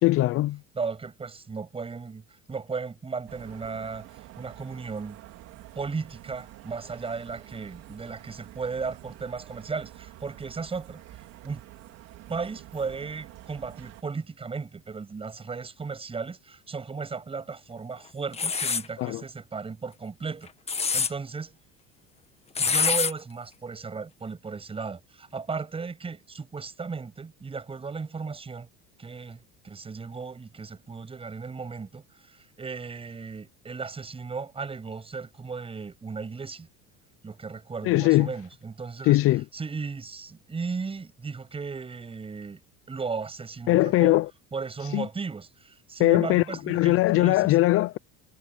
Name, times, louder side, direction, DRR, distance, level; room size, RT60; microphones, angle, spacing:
voice 1, 0.0-0.6 19.0-19.2 37.8-38.3 39.1-39.4 43.7-44.3 44.9-45.1 46.0-48.0, left 18 dB, 45° left, 0.6 m, -21 dB
voice 2, 0.7-5.2 5.8-11.0 11.4-11.6 12.3-21.5 22.6-28.7 29.0-29.4 29.6-36.7 37.2-39.2 39.5-42.6 42.9-44.2 44.5-47.6, right 4 dB, 20° right, 7.1 m, -35 dB
sound 1, 3.3-14.0, right 16 dB, 60° right, 4.6 m, -48 dB
sound 2, 18.3-18.9 20.5-21.1 22.6-23.1, left 5 dB, 20° left, 1.6 m, -25 dB
cardioid pair, 135°, 30 cm